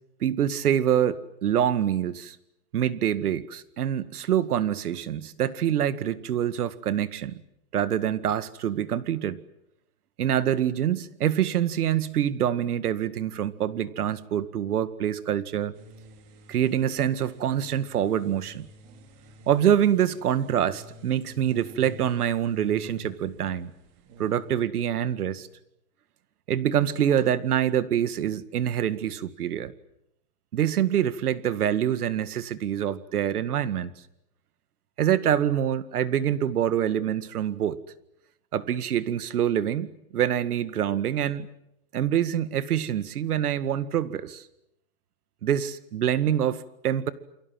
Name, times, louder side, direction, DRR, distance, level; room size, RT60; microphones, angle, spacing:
voice 1, 0.2-2.4 2.7-7.4 7.7-9.4 10.2-15.7 16.5-18.7 19.5-23.7 24.2-25.5 26.5-29.7 30.5-33.9 35.0-37.8 38.5-41.5 41.9-44.4 45.4-47.1, right 10 dB, 70° right, 14 dB, 2.0 m, -25 dB
sound 1, 15.7-24.7, equal, 25° right, 2.8 m, -49 dB
29.0 x 23.5 x 7.7 m, 0.81 s
hypercardioid pair, 170°, 46 cm